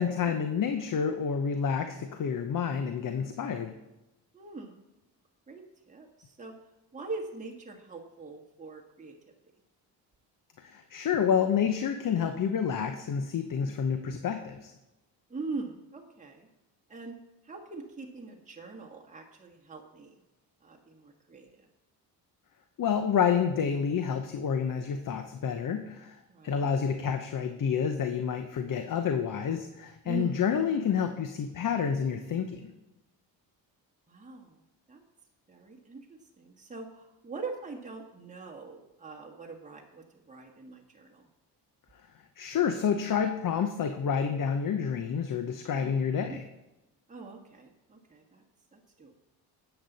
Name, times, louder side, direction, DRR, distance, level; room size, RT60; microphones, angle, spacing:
voice 1, 0.0-3.7 10.6-14.7 22.8-26.2 26.4-32.7 42.4-46.4, left 7 dB, 50° left, 7 dB, 0.9 m, -29 dB
voice 2, 4.3-4.8 5.5-6.5 6.9-9.2 13.7-14.2 15.3-16.5 16.9-17.1 17.4-20.1 20.6-21.5 26.3-26.7 30.0-30.5 34.1-34.6 34.9-35.0 35.5-41.3 45.8-46.4 47.1-48.4 48.7-49.1, right 3 dB, 15° right, 0 dB, 1.5 m, -42 dB
10.0 x 8.1 x 4.1 m, 0.98 s
supercardioid pair, 65°, 43 cm